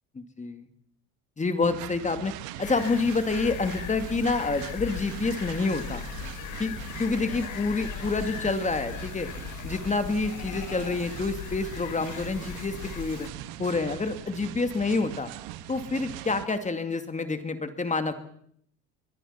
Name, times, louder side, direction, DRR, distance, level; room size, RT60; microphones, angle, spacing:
voice 1, 0.1-0.6 1.4-2.3 2.6-6.1 6.6-9.3 9.6-13.3 13.6-15.3 15.7-18.1, left 3 dB, 20° left, 8 dB, 2.4 m, -28 dB
sound 1, 1.6-16.5, right 14 dB, 80° right, 1.5 m, -41 dB
sound 2, 2.6-13.3, left 10 dB, 55° left, 1.4 m, -39 dB
22.5 x 22.5 x 5.8 m, 0.67 s
supercardioid pair, 95°, 36 cm